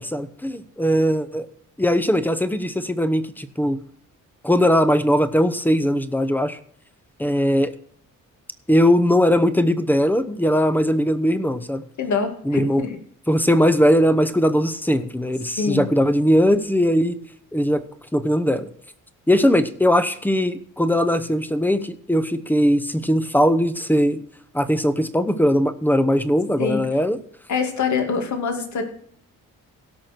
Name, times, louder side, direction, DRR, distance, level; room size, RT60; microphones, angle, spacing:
voice 1, 0.0-1.5 1.8-3.8 4.4-6.6 7.2-7.7 8.7-11.8 12.4-12.8 13.3-17.2 17.5-17.8 18.1-18.7 19.3-24.2 24.5-27.2, equal, 5° left, 12 dB, 0.9 m, -19 dB
voice 2, 12.0-13.0 15.6-15.9 26.6-26.9 27.5-28.8, left 5 dB, 60° left, 4 dB, 2.4 m, -24 dB
17.0 x 6.3 x 4.5 m, 0.62 s
cardioid pair, 110°, 33 cm